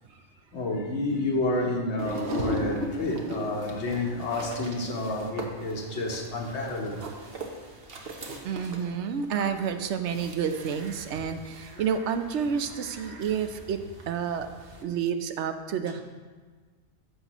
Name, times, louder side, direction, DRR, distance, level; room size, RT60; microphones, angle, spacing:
voice 1, 0.5-7.0 7.3-7.4, left 2 dB, 80° left, 1.4 m, -29 dB
sound 1, 2.0-14.8, right 1 dB, 60° right, 1.1 m, -39 dB
voice 2, 8.4-13.8 14.1-14.5 14.8-16.0, right 7 dB, 85° right, 0.9 m, -29 dB
13.5 x 5.7 x 3.0 m
omnidirectional pair, 1.1 m